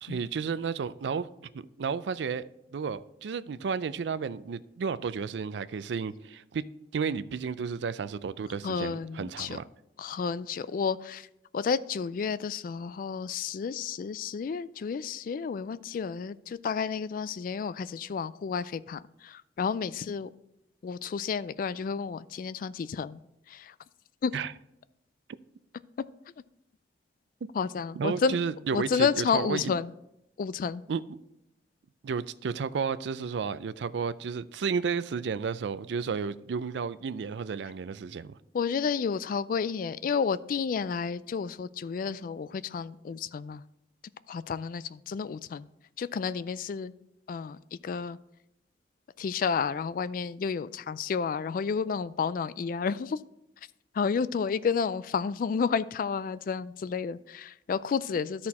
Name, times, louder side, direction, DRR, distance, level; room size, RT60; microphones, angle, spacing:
voice 1, 0.0-1.3 1.5-6.6 6.9-9.6 24.3-24.5 28.0-29.7 30.9-31.0 32.0-38.3, right 5 dB, 80° right, 0.4 m, -32 dB
voice 2, 8.6-9.6 10.0-11.3 11.5-20.3 20.8-23.2 23.5-23.7 24.2-24.3 27.5-28.4 28.7-29.9 30.4-30.8 38.5-43.6 44.3-45.7 46.0-46.9 47.3-48.2 49.2-53.2 53.9-58.5, left 6 dB, 50° left, 0.3 m, -31 dB
13.0 x 4.3 x 4.2 m
head